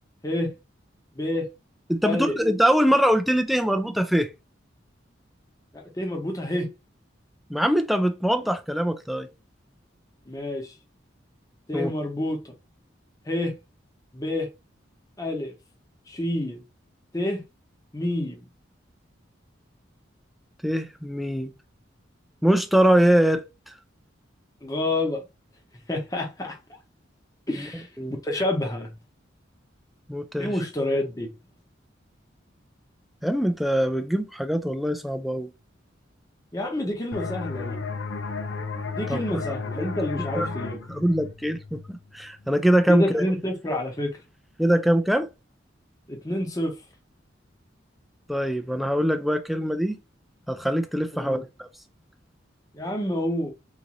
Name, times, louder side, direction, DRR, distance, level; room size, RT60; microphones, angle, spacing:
voice 1, 1.2-1.5 2.0-2.4 5.7-6.7 10.3-10.7 11.7-12.5 13.3-13.5 14.1-14.5 15.2-15.5 16.1-16.6 17.1-17.4 17.9-18.4 24.6-25.2 25.9-26.6 27.5-27.9 28.2-28.9 30.4-31.3 36.5-37.8 38.9-40.8 42.9-44.2 46.1-46.7 51.1-51.4 52.7-53.5, left 1 dB, 20° left, 0.8 m, -28 dB
voice 2, 1.9-4.3 7.5-9.3 11.7-11.9 20.6-21.5 22.4-23.5 27.5-27.7 28.0-28.1 30.1-30.5 33.2-35.5 39.1-39.4 39.8-39.9 40.3-40.5 40.9-43.2 44.6-45.3 48.3-50.0 50.5-51.7, equal, ahead, 0.3 m, -23 dB
sound 1, 37.1-42.5, left 4 dB, 75° left, 0.5 m, -34 dB
3.9 x 2.6 x 2.9 m
head